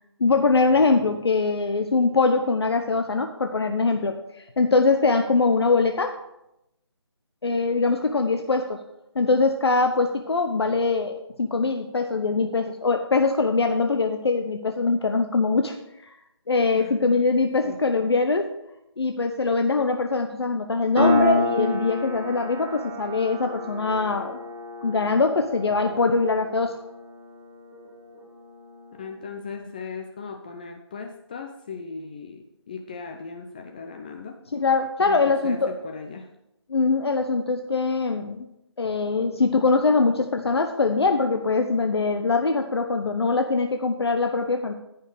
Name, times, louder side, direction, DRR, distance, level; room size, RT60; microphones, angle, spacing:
voice 1, 0.2-6.2 7.4-8.8 9.1-15.8 16.5-18.5 19.0-24.4 24.8-26.8 34.5-35.7 36.7-38.5 38.8-44.7, left 3 dB, 65° left, 6 dB, 0.9 m, -22 dB
Piano, 21.0-28.1, left 2 dB, 25° right, 2.7 m, -28 dB
voice 2, 28.9-34.4 35.0-36.3, left 5 dB, 20° left, 3 dB, 0.5 m, -38 dB
14.0 x 5.6 x 4.9 m, 0.86 s
figure-of-eight pair, 155°, 15 cm